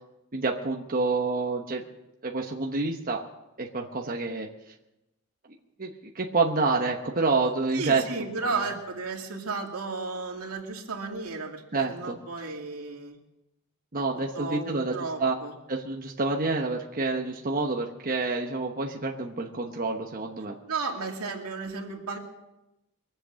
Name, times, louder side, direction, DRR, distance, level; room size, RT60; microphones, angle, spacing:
voice 1, 0.3-1.8 2.2-3.2 3.6-4.5 5.8-8.3 11.7-12.2 13.9-15.4 15.7-20.6, right 3 dB, 40° right, 1 dB, 1.0 m, -28 dB
voice 2, 7.7-11.6 11.9-13.1 14.3-15.5 20.7-22.2, right 4 dB, 85° right, 1 dB, 2.4 m, -33 dB
23.0 x 8.0 x 6.4 m, 0.95 s
head